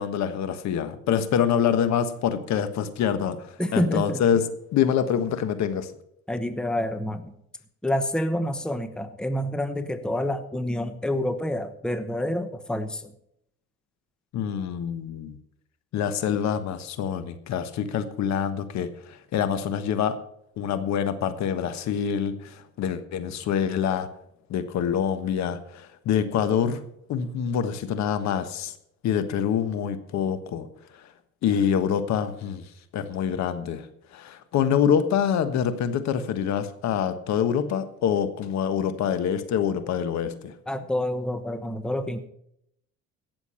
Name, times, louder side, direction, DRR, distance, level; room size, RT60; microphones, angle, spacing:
voice 1, 0.0-4.5 4.7-5.9 14.3-15.4 15.9-20.2 20.6-24.1 24.5-26.8 27.1-28.7 29.0-30.7 31.4-32.6 32.9-33.8 34.1-40.5, left 8 dB, 60° left, 11 dB, 1.4 m, -26 dB
voice 2, 3.6-4.2 6.3-7.3 7.8-13.1 40.7-42.2, left 1 dB, 5° left, 10 dB, 1.0 m, -28 dB
17.0 x 7.0 x 5.8 m, 0.73 s
cardioid pair, 105°, 30 cm